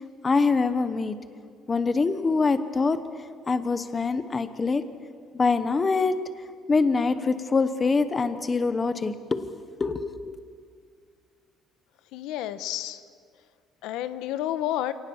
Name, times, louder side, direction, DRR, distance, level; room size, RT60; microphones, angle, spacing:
voice 1, 0.2-1.2 1.7-3.0 3.5-4.8 5.3-6.2 6.7-9.4 9.8-10.3, left 4 dB, 20° left, 11 dB, 0.9 m, -24 dB
voice 2, 12.1-13.0 13.8-14.9, left 12 dB, 90° left, 12 dB, 1.0 m, -30 dB
28.0 x 18.5 x 7.1 m, 2.1 s
cardioid pair, 175°, 0 cm